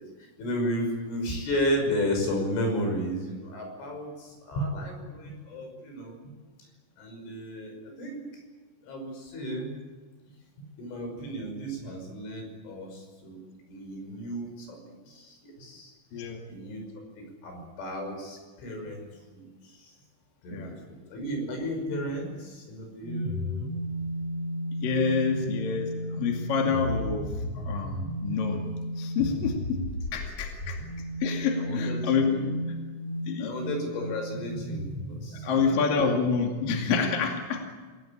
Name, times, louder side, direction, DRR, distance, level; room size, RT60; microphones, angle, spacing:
voice 1, 0.0-6.2 7.0-8.2 8.8-9.7 10.6-13.4 13.7-14.8 15.1-16.8 17.2-19.9 20.4-23.7 31.6-32.5 33.4-36.1, equal, 70° left, 3 dB, 8.1 m, -34 dB
voice 2, 16.1-16.4 20.5-20.8 24.8-27.3 27.6-28.7 29.0-30.8 31.2-32.4 33.3-33.6 35.4-37.9, left 5 dB, 50° left, 2 dB, 3.6 m, -28 dB
sound 1, 23.0-35.9, equal, 35° left, 3.1 m, -34 dB
27.0 x 17.0 x 8.8 m, 1.4 s
omnidirectional pair, 5.7 m